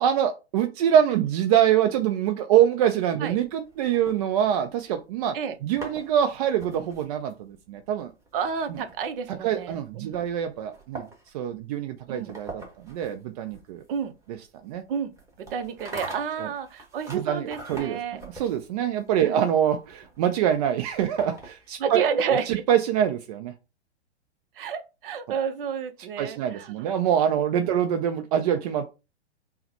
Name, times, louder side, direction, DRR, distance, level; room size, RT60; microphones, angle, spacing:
voice 1, 0.0-5.4 5.6-8.1 8.7-8.8 9.3-11.1 11.3-13.8 14.6-14.8 16.4-16.5 17.1-18.0 18.3-22.0 22.3-23.5 26.2-28.9, right 9 dB, 35° right, 0.4 m, -24 dB
sound 1, 3.3-4.9 5.5-21.9, right 2 dB, 10° right, 1.3 m, -44 dB
voice 2, 8.3-10.2 12.1-12.3 13.9-14.1 14.9-15.1 15.4-18.2 19.2-19.4 21.8-22.6 24.6-26.9, right 7 dB, 50° right, 0.8 m, -30 dB
5.5 x 2.2 x 2.8 m
hypercardioid pair, 115°, 34 cm